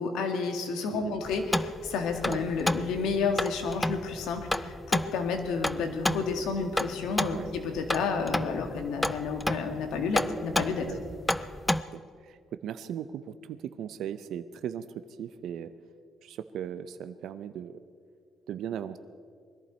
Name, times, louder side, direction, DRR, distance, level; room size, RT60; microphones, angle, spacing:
voice 1, 0.0-10.9, left 4 dB, 90° left, 5 dB, 1.9 m, -31 dB
sound 1, 1.3-11.8, left 1 dB, 10° left, 0.4 m, -32 dB
voice 2, 11.7-12.4 12.6-15.7 16.2-17.8 18.5-19.0, right 9 dB, 70° right, 10 dB, 0.6 m, -38 dB
21.0 x 14.0 x 4.3 m, 2.2 s
cardioid pair, 125°, 0 cm